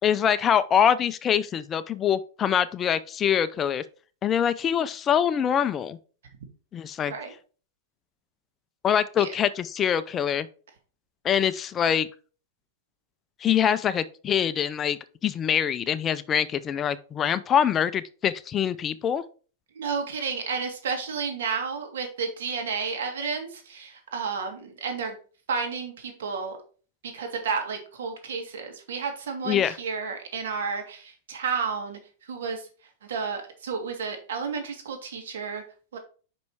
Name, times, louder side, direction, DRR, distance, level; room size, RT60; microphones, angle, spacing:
voice 1, 0.0-3.8 4.2-6.0 6.7-7.1 8.8-10.5 11.2-12.1 13.4-19.2 29.5-29.8, left 8 dB, 25° left, 0.4 m, -24 dB
voice 2, 19.7-25.2 25.5-26.6 27.0-32.7 33.0-35.6 35.9-36.0, right 5 dB, 85° right, 2.1 m, -31 dB
5.4 x 5.3 x 4.6 m
supercardioid pair, 140°, 0 cm